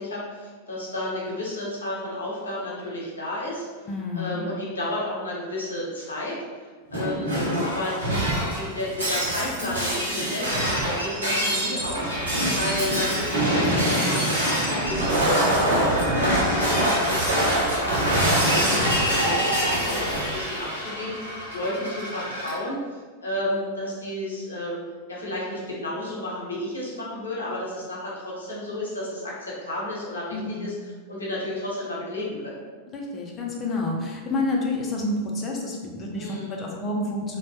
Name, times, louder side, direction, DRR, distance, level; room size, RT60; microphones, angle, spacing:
voice 1, 0.0-3.9 4.1-7.3 7.6-12.1 12.6-24.8 25.1-32.6 36.2-36.5, left 1 dB, 75° left, -5 dB, 0.8 m, -32 dB
voice 2, 3.9-4.3 30.3-30.8 32.9-37.4, left 2 dB, 25° left, -1 dB, 0.5 m, -29 dB
Shatter, 6.9-22.5, equal, 80° right, 0.8 m, -24 dB
2.9 x 2.2 x 2.8 m, 1.4 s
figure-of-eight pair, 90°, 0 cm